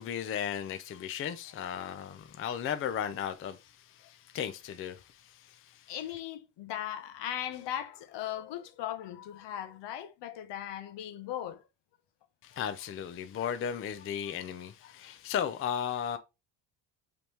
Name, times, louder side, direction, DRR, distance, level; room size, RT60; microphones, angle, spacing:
voice 1, 0.0-5.9 12.4-16.2, left 8 dB, 30° left, 0.4 m, -36 dB
voice 2, 5.9-11.6, left 11 dB, 65° left, 0.7 m, -38 dB
5.1 x 3.1 x 2.8 m
cardioid pair, 115°, 47 cm